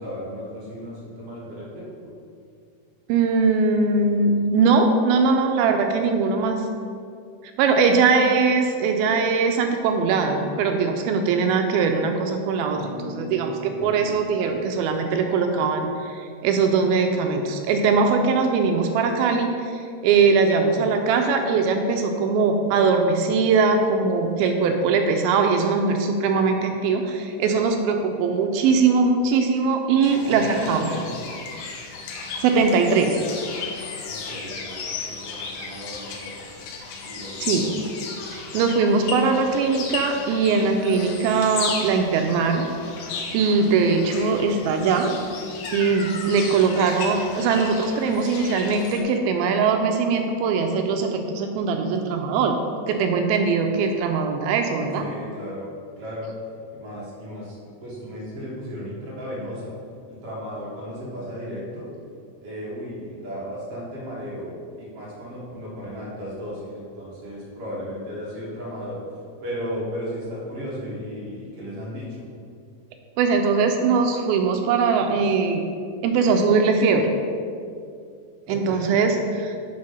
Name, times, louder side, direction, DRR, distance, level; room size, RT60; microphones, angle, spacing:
voice 1, 0.0-1.9 13.7-14.2 30.3-31.1 34.1-36.3 37.0-37.8 55.0-55.7 56.0-56.3 56.7-59.7 60.1-61.9 62.4-69.0 69.4-72.3 78.5-79.0, equal, 55° right, -7 dB, 1.7 m, -35 dB
voice 2, 3.1-6.6 7.6-30.9 32.4-33.2 37.4-37.7 38.3-42.7 43.3-45.1 45.7-52.6 52.9-55.1 73.2-75.6 76.0-77.1 78.5-79.6, right 4 dB, 85° right, 4 dB, 2.2 m, -21 dB
sound 1, 12.8-15.9, left 3 dB, 60° left, 2.2 m, -42 dB
sound 2, 30.0-49.0, left 4 dB, 85° left, 1.9 m, -35 dB
6.4 x 4.4 x 5.5 m, 2.3 s
omnidirectional pair, 4.6 m